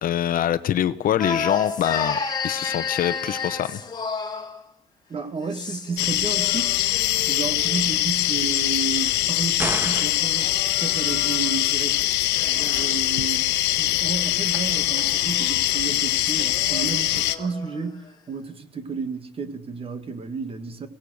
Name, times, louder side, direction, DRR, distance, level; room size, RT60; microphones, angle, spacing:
voice 1, 0.0-3.8, left 11 dB, 55° left, 0.9 m, -24 dB
sound 1, 1.2-4.6 5.4-6.0 6.3-8.0 9.0-11.8 12.2-17.8, left 5 dB, 25° left, 2.1 m, -34 dB
voice 2, 5.1-6.7 7.3-10.5 10.8-12.0 12.3-20.9, right 5 dB, 35° right, 2.0 m, -32 dB
sound 2, 6.0-17.4, left 15 dB, 90° left, 1.2 m, -23 dB
sound 3, 9.6-10.3, right 1 dB, 15° right, 1.5 m, -29 dB
23.0 x 17.5 x 6.5 m
cardioid pair, 110°, 17 cm